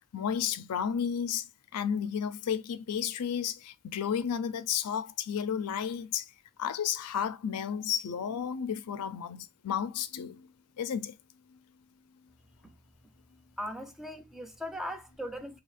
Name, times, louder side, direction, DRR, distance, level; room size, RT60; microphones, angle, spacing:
voice 1, 0.1-1.5 1.7-6.3 6.6-10.5 10.8-11.2, left 8 dB, 85° left, 0.4 m, -32 dB
voice 2, 13.6-15.6, equal, ahead, 0.4 m, -39 dB
2.8 x 2.4 x 4.0 m
head